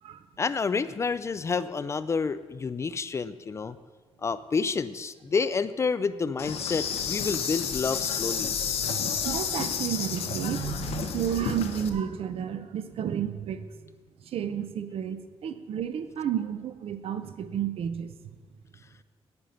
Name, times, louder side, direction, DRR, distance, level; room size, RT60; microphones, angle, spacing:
voice 1, 0.4-3.8 4.2-8.5, left 5 dB, 25° left, 14 dB, 0.3 m, -29 dB
Insect, 6.4-11.9, left 7 dB, 70° left, 1.0 m, -31 dB
voice 2, 8.2-13.7 14.2-18.1, right 9 dB, 65° right, 11 dB, 0.7 m, -32 dB
9.7 x 9.0 x 5.6 m, 1.5 s
wide cardioid pair, 160°, 11 cm